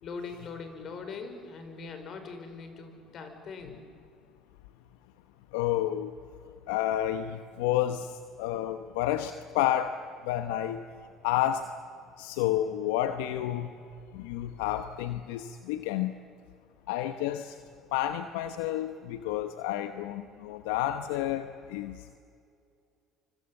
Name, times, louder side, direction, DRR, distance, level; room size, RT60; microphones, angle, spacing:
voice 1, 0.0-3.8, left 4 dB, 55° left, 7 dB, 5.2 m, -41 dB
voice 2, 5.5-6.1 6.7-8.1 8.4-10.0 10.2-10.8 11.2-11.6 12.2-13.7 14.1-16.1 16.9-17.5 17.9-22.0, left 12 dB, 85° left, 9 dB, 1.0 m, -30 dB
27.0 x 25.5 x 7.9 m, 2.3 s
supercardioid pair, 75°, 0 cm